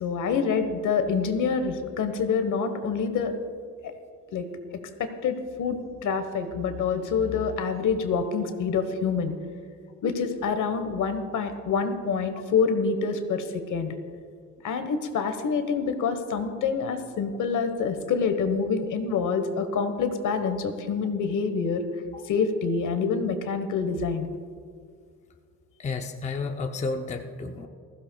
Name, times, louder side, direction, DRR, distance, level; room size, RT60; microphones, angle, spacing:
voice 1, 0.0-3.3 3.8-3.9 4.3-4.4 4.7-9.3 10.0-13.9 14.6-21.8 22.3-24.3, left 5 dB, 65° left, 8 dB, 1.2 m, -26 dB
voice 2, 25.8-27.7, left 3 dB, 20° left, 4 dB, 0.5 m, -31 dB
20.0 x 15.0 x 2.3 m, 2.1 s
cardioid pair, 160°, 33 cm